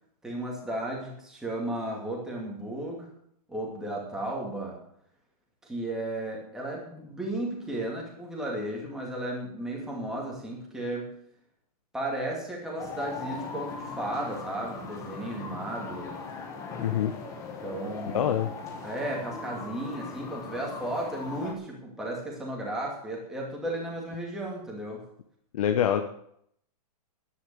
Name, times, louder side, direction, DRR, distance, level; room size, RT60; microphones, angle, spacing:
voice 1, 0.2-3.1 3.5-4.8 5.6-11.1 11.9-16.1 17.6-18.2 18.8-25.0, right 1 dB, 5° right, -3 dB, 2.5 m, -34 dB
sound 1, 12.8-21.5, left 4 dB, 15° left, 1.5 m, -39 dB
voice 2, 16.8-17.1 18.1-18.5 25.5-26.0, left 9 dB, 60° left, 6 dB, 1.0 m, -25 dB
11.0 x 9.8 x 7.0 m, 0.70 s
hypercardioid pair, 170°, 21 cm